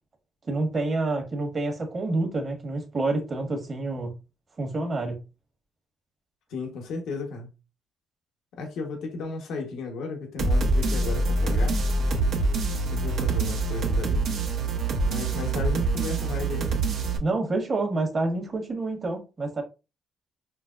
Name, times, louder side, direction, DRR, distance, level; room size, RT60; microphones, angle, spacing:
voice 1, 0.5-4.2 4.6-5.2 17.2-19.6, right 2 dB, 35° right, 1.3 m, -28 dB
voice 2, 6.5-7.5 8.6-11.8 12.9-14.3 15.1-16.7, left 3 dB, 80° left, 1.0 m, -34 dB
sound 1, 10.4-17.2, right 2 dB, 80° right, 0.9 m, -25 dB
5.8 x 2.1 x 2.4 m
cardioid pair, 90°, 0 cm